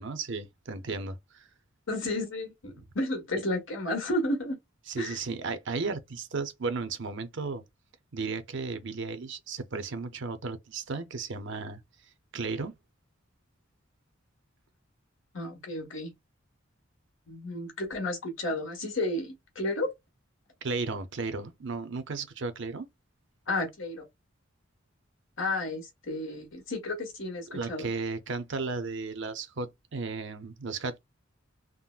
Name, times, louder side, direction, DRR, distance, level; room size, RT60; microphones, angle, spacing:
voice 1, 0.0-1.5 4.9-7.6 8.1-11.8 12.3-12.8 20.6-22.9 27.5-31.0, right 4 dB, 65° right, 0.6 m, -34 dB
voice 2, 1.9-4.6 5.0-5.2 15.3-16.1 17.3-19.9 23.5-24.0 25.4-27.9, left 1 dB, 70° left, 1.4 m, -32 dB
3.6 x 2.1 x 2.4 m
head